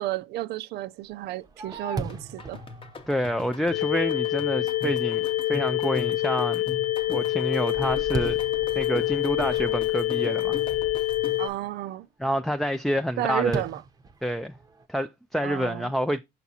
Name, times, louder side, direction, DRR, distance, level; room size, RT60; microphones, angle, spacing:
voice 1, 0.0-2.6 11.4-12.1 13.2-13.8 15.4-15.9, right 15 dB, 75° right, 0.5 m, -32 dB
Fireworks, 1.1-4.6 5.1-5.2 5.8-6.2 6.6-11.4 13.5-14.9, right 3 dB, 20° right, 0.7 m, -39 dB
sound 1, 2.1-11.6, left 4 dB, 30° left, 0.7 m, -41 dB
voice 2, 3.1-5.2 5.5-6.6 7.1-8.4 8.8-10.6 12.2-13.6 14.2-14.5 14.9-16.2, equal, ahead, 0.3 m, -27 dB
sound 2, 3.7-11.5, left 16 dB, 80° left, 0.5 m, -26 dB
5.9 x 5.8 x 2.7 m
cardioid pair, 110°, 17 cm